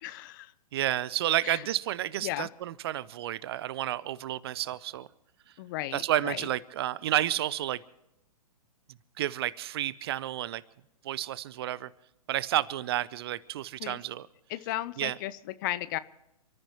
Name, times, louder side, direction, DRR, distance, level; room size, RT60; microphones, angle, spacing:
voice 1, 0.0-0.5 1.4-1.7 2.2-2.5 5.6-6.5 13.8-14.0 14.5-16.0, left 15 dB, 30° left, 16 dB, 0.7 m, -35 dB
voice 2, 0.7-5.1 5.9-7.8 9.2-10.6 11.0-11.9 12.3-14.3 15.0-15.2, right 13 dB, 40° right, 21 dB, 0.7 m, -31 dB
29.0 x 14.0 x 3.1 m, 0.87 s
figure-of-eight pair, 120°, 20 cm